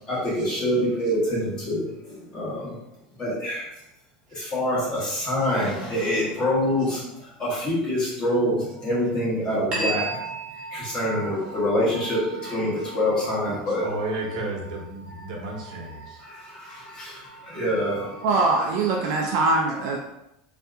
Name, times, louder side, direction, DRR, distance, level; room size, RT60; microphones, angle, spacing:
voice 1, 0.0-2.8 3.2-3.7 4.3-10.3 10.7-13.9 16.2-18.3 19.0-19.2, left 1 dB, 20° left, -7 dB, 1.1 m, -26 dB
sound 1, 9.7-18.7, right 3 dB, 20° right, 0.7 m, -38 dB
voice 2, 13.8-16.2 19.2-19.4, right 2 dB, 75° right, 0 dB, 0.8 m, -33 dB
voice 3, 18.2-20.0, right 3 dB, 50° right, 0 dB, 0.3 m, -22 dB
2.7 x 2.4 x 3.4 m, 0.87 s
supercardioid pair, 180°, 4 cm